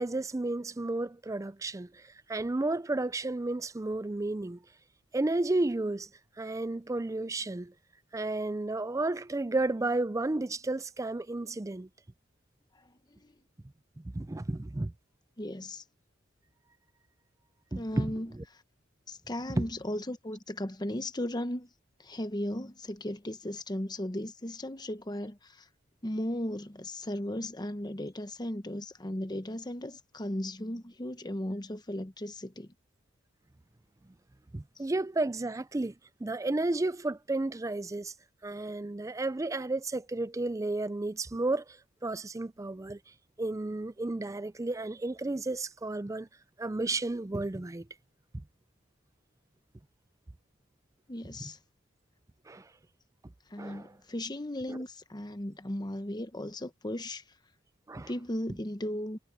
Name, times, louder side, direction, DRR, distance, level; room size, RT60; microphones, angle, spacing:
voice 1, 0.0-4.6 5.1-6.1 6.4-7.7 8.1-11.9 14.0-14.9 17.7-18.4 19.5-19.7 34.5-35.9 36.2-38.1 38.4-41.8 42.0-43.0 43.4-46.3 46.6-47.9 52.5-52.7 53.6-53.9 54.7-54.8 57.9-58.1, right 2 dB, 15° right, 0.4 m, -32 dB
voice 2, 15.4-15.8 17.7-18.3 19.1-21.7 22.0-25.7 26.0-32.7 51.1-51.6 53.5-57.2 58.1-59.2, left 1 dB, 20° left, 1.0 m, -36 dB
head